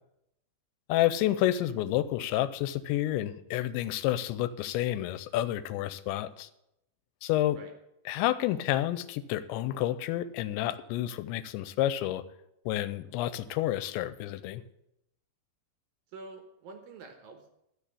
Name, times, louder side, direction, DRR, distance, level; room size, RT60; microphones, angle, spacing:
voice 1, 0.9-6.5 7.2-7.6 8.1-12.2 12.7-14.6, left 13 dB, 90° left, 14 dB, 2.9 m, -29 dB
voice 2, 16.1-17.5, right 3 dB, 70° right, 4 dB, 2.4 m, -47 dB
12.5 x 6.3 x 8.4 m, 0.83 s
omnidirectional pair, 5.1 m